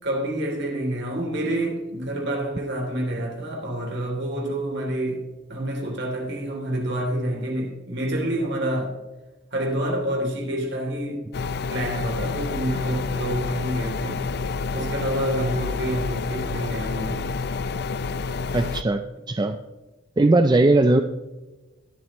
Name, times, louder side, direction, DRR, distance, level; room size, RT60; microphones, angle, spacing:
voice 1, 0.0-8.9 9.5-11.2 11.7-14.3 14.7-17.3, right 1 dB, 60° right, 2.9 m, -28 dB
sound 1, 11.3-18.8, left 4 dB, 55° left, 0.5 m, -29 dB
voice 2, 18.5-19.0 19.3-19.6 20.2-21.0, right 2 dB, 20° right, 0.4 m, -18 dB
21.0 x 7.7 x 3.0 m
head